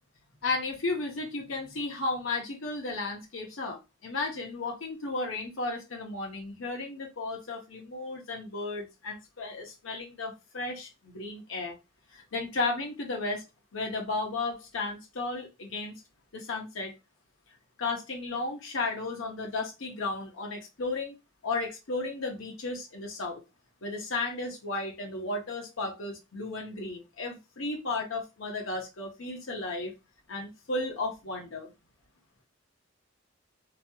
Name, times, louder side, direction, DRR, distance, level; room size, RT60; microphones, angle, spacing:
voice 1, 0.4-11.8 12.1-13.4 13.7-16.0 16.3-16.9 17.8-21.1 21.4-23.4 23.8-29.9 30.3-31.7, left 3 dB, 80° left, 0.8 m, -34 dB
3.0 x 2.7 x 2.3 m
head